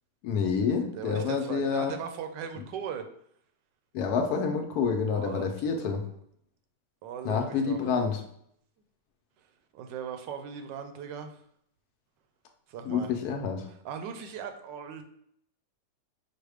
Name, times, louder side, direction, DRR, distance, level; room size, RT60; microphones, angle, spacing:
voice 1, 0.2-1.9 3.9-6.0 7.2-8.2 12.9-13.7, left 6 dB, 70° left, 4 dB, 1.0 m, -28 dB
voice 2, 0.9-3.0 5.1-6.0 7.0-7.8 9.4-9.5 9.7-11.4 12.7-13.1 13.7-15.0, right 7 dB, 85° right, 7 dB, 1.3 m, -39 dB
4.8 x 2.1 x 4.8 m, 0.69 s
omnidirectional pair, 1.9 m